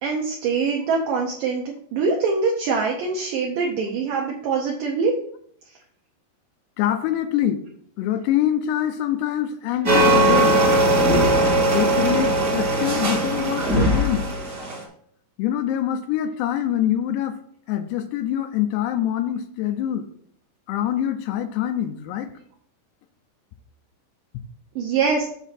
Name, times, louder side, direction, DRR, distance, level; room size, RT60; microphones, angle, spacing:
voice 1, 0.0-1.6 1.9-5.1 24.8-25.3, right 4 dB, 75° right, 0 dB, 2.1 m, -23 dB
voice 2, 6.8-7.6 8.0-10.6 11.6-14.2 15.4-17.4 17.7-20.1 20.7-22.3, left 11 dB, 85° left, 7 dB, 2.8 m, -24 dB
sound 1, 9.8-14.8, right 1 dB, 40° right, 1.4 m, -19 dB
7.5 x 3.6 x 5.8 m, 0.63 s
omnidirectional pair, 4.7 m